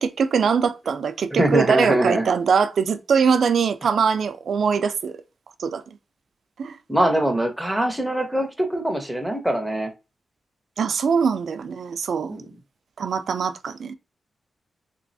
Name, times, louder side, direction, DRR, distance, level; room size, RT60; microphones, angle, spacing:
voice 1, 0.0-5.2 5.6-5.8 6.6-6.8 10.8-12.4 13.0-13.9, right 6 dB, 60° right, 0.3 m, -22 dB
voice 2, 1.3-2.3 6.9-9.9 12.3-12.4, right 1 dB, ahead, 0.5 m, -22 dB
3.3 x 3.0 x 2.6 m
wide cardioid pair, 180°, 0 cm